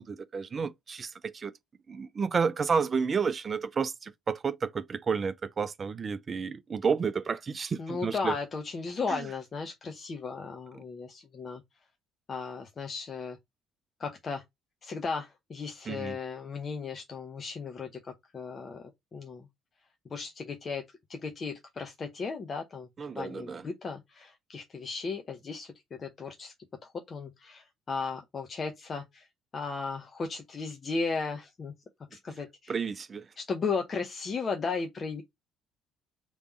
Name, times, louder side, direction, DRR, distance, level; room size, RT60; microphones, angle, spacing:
voice 1, 0.0-1.5 1.9-8.4 9.1-9.3 15.9-16.2 23.0-23.6 32.7-33.3, right 5 dB, 35° right, 0.5 m, -31 dB
voice 2, 7.8-11.6 12.3-13.4 14.0-14.4 14.8-19.5 20.0-20.8 21.1-22.9 23.1-25.7 26.0-26.5 26.8-29.3 29.5-31.7 32.1-32.8 33.4-35.2, left 4 dB, 40° left, 0.7 m, -35 dB
3.4 x 3.1 x 4.1 m
figure-of-eight pair, 50°, 0 cm